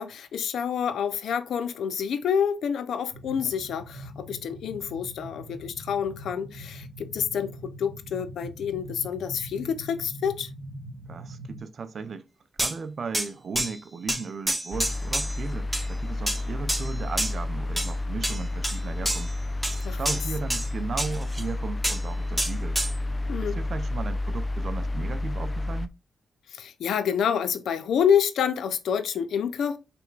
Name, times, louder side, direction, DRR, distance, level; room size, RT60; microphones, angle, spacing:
voice 1, 0.0-10.5 19.8-20.2 23.3-23.6 26.5-29.8, left 7 dB, 80° left, 0.6 m, -28 dB
sound 1, 3.1-11.6, equal, 50° left, 1.8 m, -42 dB
voice 2, 11.1-12.3 12.6-19.3 19.9-22.8 23.4-25.9, right 5 dB, 60° right, 0.6 m, -36 dB
sound 2, 12.6-12.7 13.1-13.3 13.6-13.7 14.1-15.4 15.7-15.9 16.3-16.4 16.7-17.3 17.8-17.9 18.2-18.8 19.1-19.3 19.6-20.7 21.0-21.4 21.8-22.0 22.4-22.9, right 1 dB, 5° right, 1.7 m, -28 dB
sound 3, 14.7-25.9, left 2 dB, 30° left, 0.5 m, -30 dB
5.9 x 3.4 x 2.4 m
supercardioid pair, 55°, 0 cm